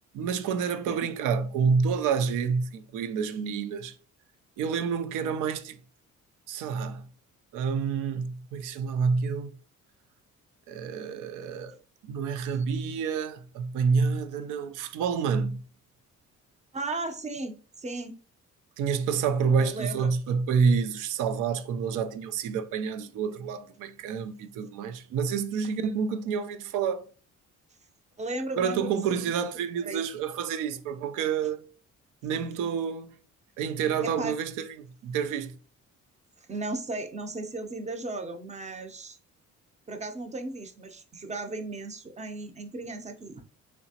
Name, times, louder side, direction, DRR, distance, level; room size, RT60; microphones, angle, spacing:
voice 1, 0.1-3.9 4.6-5.8 6.5-7.1 7.5-9.5 10.7-11.7 12.0-15.6 18.8-27.1 28.6-31.6 32.2-33.2 33.6-35.6, right 6 dB, 90° right, 0.5 m, -28 dB
voice 2, 16.7-18.2 19.6-20.1 28.2-29.3 29.8-30.0 34.0-34.4 36.5-39.2 39.9-43.4, right 2 dB, 25° right, 0.5 m, -36 dB
3.3 x 2.8 x 2.7 m
cardioid pair, 90°, 30 cm